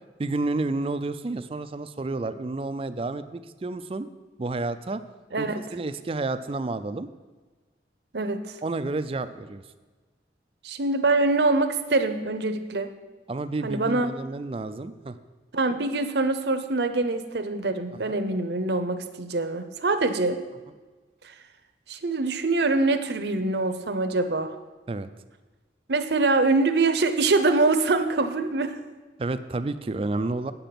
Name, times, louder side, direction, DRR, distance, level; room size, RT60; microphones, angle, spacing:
voice 1, 0.2-4.1 4.4-5.0 5.4-7.1 8.6-9.6 13.3-15.2 18.0-18.2 24.9-25.1 29.2-30.5, right 2 dB, 30° right, 11 dB, 0.4 m, -30 dB
voice 2, 5.3-5.7 8.1-8.6 10.6-12.9 13.6-14.1 15.5-20.4 21.2-21.3 21.9-24.5 25.9-28.8, right 3 dB, 70° right, 8 dB, 0.7 m, -24 dB
9.1 x 6.9 x 5.9 m, 1.3 s
head